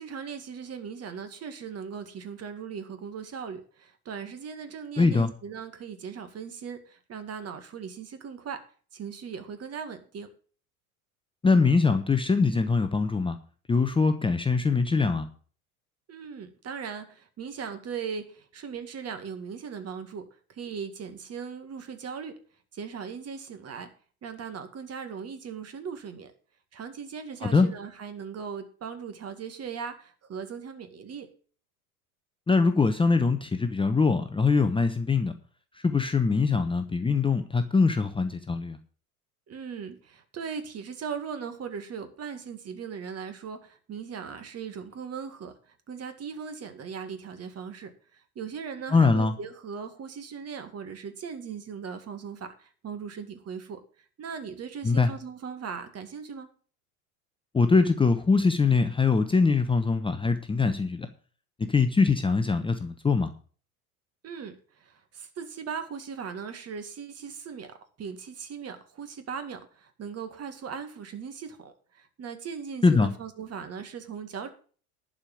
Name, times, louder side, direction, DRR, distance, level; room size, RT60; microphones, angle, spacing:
voice 1, 0.0-8.6 8.9-10.3 16.1-20.2 20.5-22.3 22.7-23.9 24.2-26.3 26.7-31.3 39.5-56.5 64.2-74.5, right 6 dB, 35° right, 9 dB, 2.1 m, -39 dB
voice 2, 5.0-5.3 11.4-13.4 13.7-15.3 27.4-27.7 32.5-35.3 35.8-38.8 48.9-49.3 54.8-55.1 57.5-61.1 61.6-63.3 72.8-73.1, left 4 dB, 10° left, 8 dB, 0.9 m, -23 dB
11.5 x 5.1 x 8.6 m, 0.42 s
hypercardioid pair, 75°, 44 cm